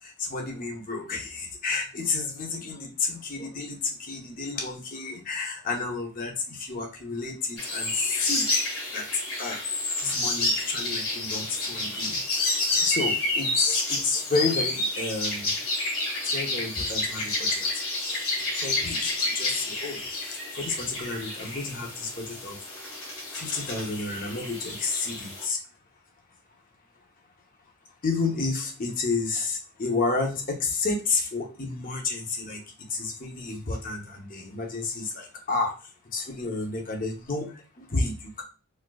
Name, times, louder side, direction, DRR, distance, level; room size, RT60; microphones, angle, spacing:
voice 1, 0.0-9.1 9.4-9.6 10.0-15.5 16.2-17.7 18.0-22.6 23.3-25.6 28.0-32.6 32.9-35.7 36.1-38.4, left 3 dB, 40° left, 1 dB, 0.8 m, -31 dB
sound 1, 7.6-25.5, left 2 dB, 85° left, 1.6 m, -29 dB
4.3 x 2.4 x 2.3 m, 0.34 s
head